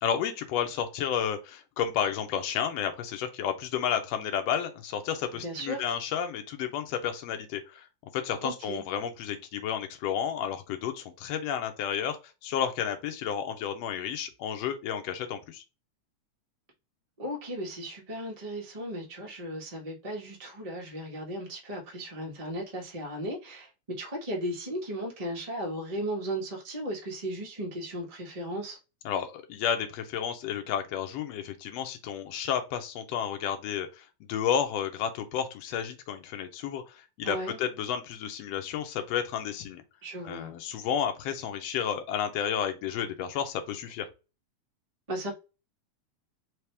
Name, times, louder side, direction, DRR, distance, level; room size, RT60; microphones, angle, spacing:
voice 1, 0.0-7.9 8.1-12.2 12.4-15.6 29.1-39.8 40.3-44.1, left 8 dB, 70° left, 1.7 m, -31 dB
voice 2, 5.3-5.9 8.4-8.8 17.2-28.8 37.2-37.6 40.0-40.5 45.1-45.3, right 1 dB, 65° right, 0.3 m, -36 dB
4.9 x 3.0 x 3.4 m
omnidirectional pair, 3.3 m